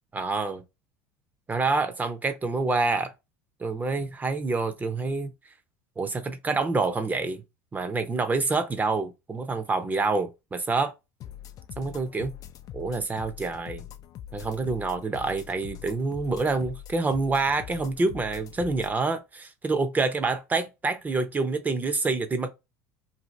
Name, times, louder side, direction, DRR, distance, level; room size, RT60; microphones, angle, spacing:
voice 1, 0.1-0.6 1.5-3.1 3.6-5.3 6.0-7.4 7.7-10.9 11.8-12.3 12.7-13.8 14.3-22.5, right 3 dB, 20° right, 0.7 m, -27 dB
sound 1, 11.2-19.0, left 11 dB, 45° left, 0.4 m, -43 dB
2.7 x 2.4 x 3.1 m
supercardioid pair, 100°, 8 cm